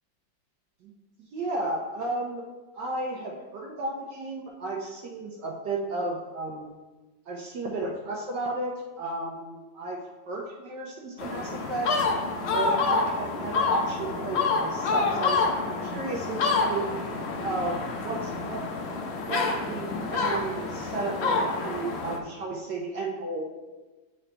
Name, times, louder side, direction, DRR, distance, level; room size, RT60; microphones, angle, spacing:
voice 1, 1.3-2.4 2.7-6.7 7.3-10.0 10.3-11.9 12.5-16.8 17.4-18.7 19.2-23.5, right 2 dB, 70° right, -2 dB, 1.3 m, -33 dB
sound 1, 11.2-22.2, left 4 dB, 75° left, 0.6 m, -28 dB
8.5 x 3.9 x 3.3 m, 1.2 s
omnidirectional pair, 2.1 m